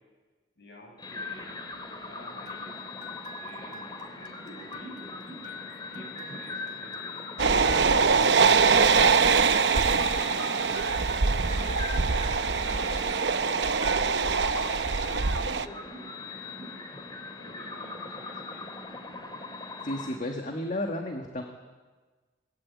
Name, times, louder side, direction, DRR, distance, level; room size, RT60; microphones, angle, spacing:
voice 1, 0.6-5.6 5.9-10.9 11.2-16.8 17.4-18.7, left 1 dB, 65° left, 1 dB, 6.7 m, -51 dB
sound 1, 1.0-20.2, left 3 dB, 25° left, 2.7 m, -40 dB
sound 2, 2.5-13.3 13.7-14.6, left 1 dB, 25° right, 2.4 m, -48 dB
sound 3, 7.4-15.7, right 5 dB, 75° right, 0.8 m, -23 dB
voice 2, 19.8-21.4, left 1 dB, 45° left, 3 dB, 1.8 m, -32 dB
23.0 x 18.5 x 8.5 m, 1.4 s
head